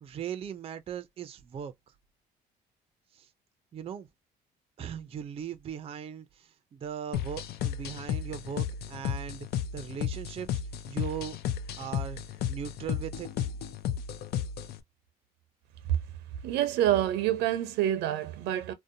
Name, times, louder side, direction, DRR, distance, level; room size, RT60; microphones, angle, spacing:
voice 1, 0.0-1.7 3.1-3.3 3.7-4.1 4.8-9.5 9.7-10.6 10.9-11.4 11.8-12.2 12.5-13.5, right 8 dB, 35° right, 0.4 m, -39 dB
sound 1, 7.1-14.8, left 9 dB, 70° left, 0.4 m, -34 dB
voice 2, 16.4-18.7, right 12 dB, 90° right, 0.5 m, -27 dB
2.6 x 2.1 x 2.5 m
cardioid pair, 110°, 17 cm